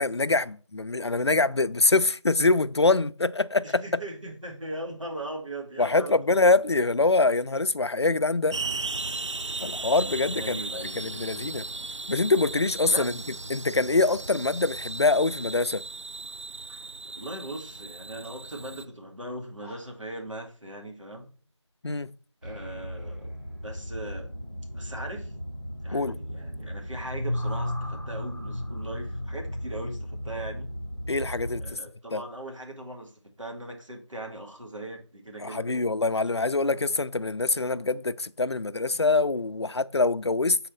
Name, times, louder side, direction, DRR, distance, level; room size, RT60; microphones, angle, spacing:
voice 1, 0.0-3.8 5.8-8.6 9.6-11.6 12.1-13.1 13.5-15.8 21.8-22.1 25.9-26.1 31.1-31.6 32.1-32.2 35.4-40.6, left 3 dB, 60° left, 0.4 m, -24 dB
voice 2, 3.6-6.6 10.3-11.3 12.9-13.1 16.7-16.8 17.1-21.3 22.4-23.3 23.6-24.3 24.7-25.3 25.8-30.7 31.6-33.1 33.4-35.7, right 1 dB, 90° right, 2.1 m, -39 dB
sound 1, 8.5-18.9, right 3 dB, 75° right, 0.5 m, -36 dB
sound 2, 14.8-16.7 17.0-17.5 17.9-18.0 18.2-18.4 18.8-18.9 19.4-20.1, left 1 dB, 25° right, 2.3 m, -57 dB
sound 3, 22.4-31.7, left 1 dB, 40° right, 1.2 m, -35 dB
6.5 x 4.1 x 4.0 m
figure-of-eight pair, 180°, 16 cm